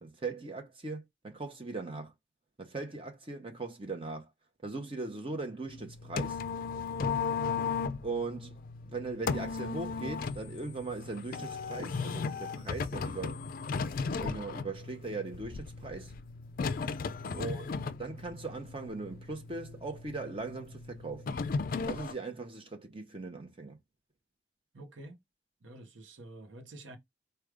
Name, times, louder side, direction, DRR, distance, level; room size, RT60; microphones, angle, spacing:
voice 1, 0.0-2.1 2.6-4.3 4.6-6.4 8.0-8.6 8.9-13.4 14.2-16.1 17.3-17.7 18.0-21.3 21.8-23.8, right 3 dB, 30° right, 0.8 m, -39 dB
sound 1, 5.7-22.1, left 5 dB, 50° left, 0.4 m, -36 dB
voice 2, 17.2-17.6 24.7-25.2 25.6-27.0, right 1 dB, 75° right, 0.9 m, -47 dB
4.8 x 2.3 x 4.8 m
head